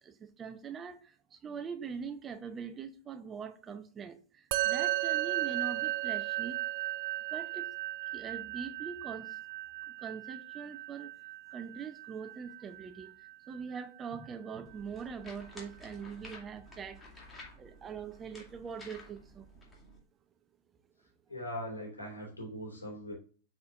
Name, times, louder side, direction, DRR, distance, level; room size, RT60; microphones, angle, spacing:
voice 1, 0.0-6.6 7.3-7.7 8.1-9.4 10.0-11.1 11.5-17.0 17.6-19.5, right 6 dB, 25° right, 0.7 m, -43 dB
Musical instrument, 4.5-14.0, right 15 dB, 50° right, 0.4 m, -36 dB
sound 1, 14.7-20.0, left 1 dB, 15° left, 2.3 m, -52 dB
voice 2, 21.3-23.1, equal, 80° left, 3.2 m, -40 dB
7.8 x 5.2 x 2.4 m
figure-of-eight pair, 90°, 0 cm